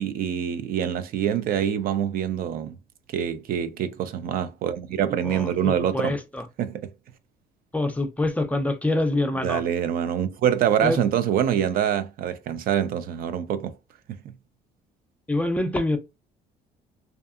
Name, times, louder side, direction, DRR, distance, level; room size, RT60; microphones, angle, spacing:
voice 1, 0.0-2.8 3.1-6.2 6.6-6.9 9.4-13.8 14.1-14.2, right 9 dB, 60° right, 0.4 m, -25 dB
voice 2, 5.2-6.4 7.7-9.6 10.8-11.0 15.3-16.0, left 2 dB, 10° left, 0.4 m, -25 dB
2.5 x 2.4 x 2.3 m
cardioid pair, 110°, 17 cm